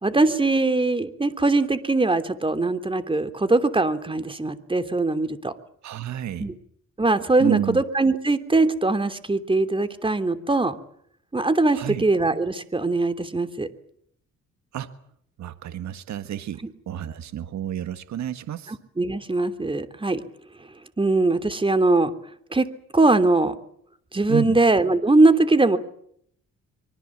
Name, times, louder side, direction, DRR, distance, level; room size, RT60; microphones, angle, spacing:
voice 1, 0.0-5.5 6.4-6.5 7.0-10.7 11.3-13.7 19.0-20.2 21.0-22.1 22.5-22.7 22.9-23.5 24.1-25.8, right 2 dB, 15° right, 10 dB, 3.0 m, -21 dB
voice 2, 5.8-6.5 7.4-7.8 11.7-12.0 14.7-14.9 15.4-18.8 24.3-24.6, right 11 dB, 65° right, 11 dB, 1.6 m, -30 dB
25.0 x 24.0 x 7.4 m, 0.67 s
cardioid pair, 90°, 30 cm